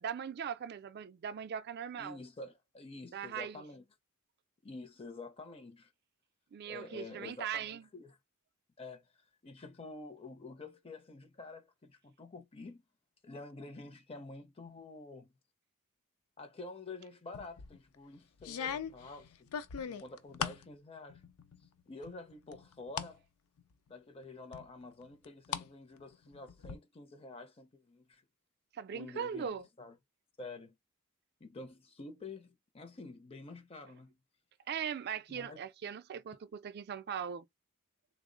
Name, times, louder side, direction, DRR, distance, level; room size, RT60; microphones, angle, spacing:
voice 1, 0.0-2.2 3.1-3.6 6.5-7.8 28.8-29.7 34.7-37.5, right 8 dB, 45° right, 0.3 m, -39 dB
voice 2, 2.0-3.9 4.6-5.9 6.6-8.2 8.8-12.8 13.2-15.3 16.4-19.5 19.8-21.2 21.6-23.2 23.9-28.2 28.9-30.0 30.4-30.7 31.4-34.2 35.3-35.6, left 3 dB, 25° left, 0.5 m, -49 dB
sound 1, 17.3-17.8 18.4-20.7 21.1-21.7 22.0-23.1 23.6-23.7 24.5-25.7 26.0-26.7, left 7 dB, 85° left, 0.4 m, -40 dB
3.4 x 2.0 x 3.7 m
head